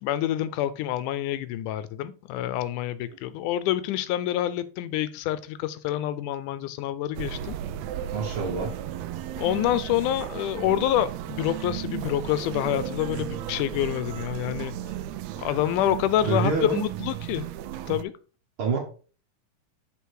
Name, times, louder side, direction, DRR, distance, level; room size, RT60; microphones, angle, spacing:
voice 1, 0.0-7.6 9.4-14.7 15.4-17.5 17.9-18.1, left 12 dB, 80° left, 2.0 m, -27 dB
sound 1, 7.1-18.0, right 11 dB, 90° right, 1.5 m, -35 dB
voice 2, 8.1-8.8 16.2-16.8 18.6-18.8, right 4 dB, 55° right, 1.7 m, -26 dB
6.8 x 4.9 x 4.7 m
omnidirectional pair, 3.6 m